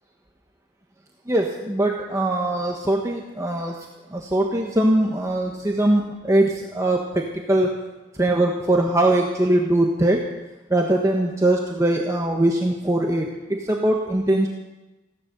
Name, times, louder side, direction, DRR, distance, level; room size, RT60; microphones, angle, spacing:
voice 1, 1.3-3.8 4.1-7.7 8.2-10.2 10.7-14.5, right 1 dB, 15° right, 0 dB, 1.2 m, -21 dB
15.5 x 11.5 x 6.8 m, 1.1 s
head